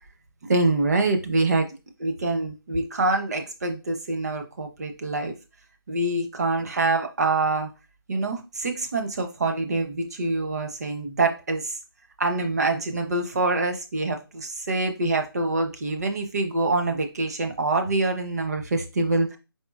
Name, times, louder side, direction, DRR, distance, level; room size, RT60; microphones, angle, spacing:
voice 1, 0.5-1.7 2.0-5.3 5.9-7.7 8.1-11.8 12.2-19.4, right 2 dB, 45° right, 5 dB, 0.7 m, -25 dB
4.4 x 3.6 x 2.3 m, 0.29 s
figure-of-eight pair, 165°, 12 cm